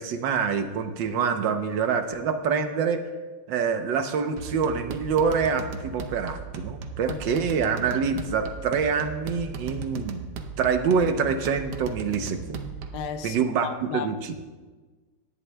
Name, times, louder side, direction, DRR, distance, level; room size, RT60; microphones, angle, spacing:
voice 1, 0.0-3.1 3.5-10.2 10.6-12.8 13.2-14.3, right 6 dB, 90° right, 1.5 m, -26 dB
sound 1, 4.4-13.1, right 5 dB, 70° right, 1.4 m, -37 dB
voice 2, 12.9-14.1, left 7 dB, 70° left, 1.1 m, -34 dB
18.0 x 11.0 x 2.2 m
omnidirectional pair, 2.0 m